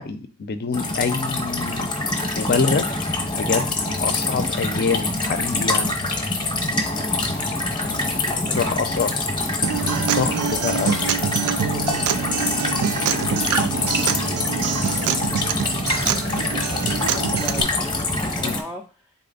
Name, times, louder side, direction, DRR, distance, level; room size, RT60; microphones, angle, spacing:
voice 1, 0.0-1.9 2.3-2.9 3.3-3.7 4.0-5.9 7.8-8.1 8.5-9.1 10.1-11.0 18.4-18.6, left 5 dB, 45° left, 9 dB, 0.6 m, -25 dB
sound 1, 0.7-18.6, left 2 dB, 20° left, 0.9 m, -25 dB
voice 2, 6.6-8.8 9.8-10.6 11.5-19.1, left 1 dB, ahead, -3 dB, 0.4 m, -39 dB
Acoustic guitar, 9.6-17.6, right 8 dB, 80° right, 0.4 m, -25 dB
4.1 x 3.3 x 3.9 m, 0.35 s
head